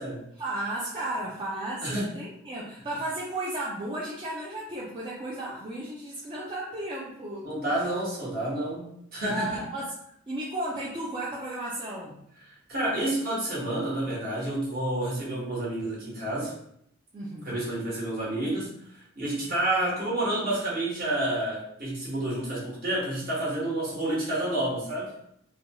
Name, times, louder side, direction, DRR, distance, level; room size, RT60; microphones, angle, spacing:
voice 1, 0.4-7.8 9.3-9.9 10.3-12.2 17.1-17.5, right 1 dB, 25° right, -6 dB, 0.4 m, -34 dB
voice 2, 7.4-8.8 9.1-9.6 12.7-16.5 17.5-18.7 19.2-25.1, right 1 dB, 50° right, -6 dB, 1.2 m, -29 dB
2.8 x 2.2 x 2.8 m, 0.71 s
head